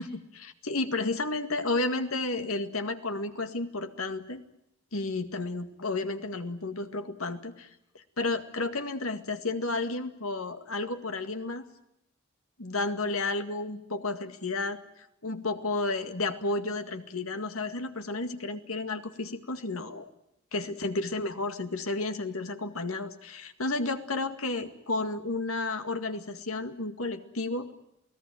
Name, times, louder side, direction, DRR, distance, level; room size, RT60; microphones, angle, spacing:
voice 1, 0.0-4.4 4.9-7.7 8.2-11.6 12.6-14.8 15.2-20.1 20.5-27.7, left 2 dB, 85° left, 8 dB, 2.0 m, -32 dB
28.5 x 18.0 x 9.2 m, 0.83 s
head